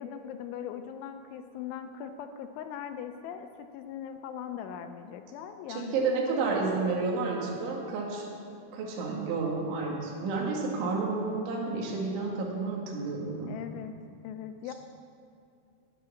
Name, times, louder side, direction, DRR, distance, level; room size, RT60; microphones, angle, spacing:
voice 1, 0.0-6.1 6.5-6.7 13.5-13.9 14.2-14.7, left 8 dB, 80° left, 7 dB, 2.9 m, -40 dB
voice 2, 5.7-8.3 8.7-13.5, right 4 dB, 70° right, -2 dB, 4.3 m, -30 dB
17.5 x 9.6 x 7.0 m, 2.5 s
omnidirectional pair, 5.7 m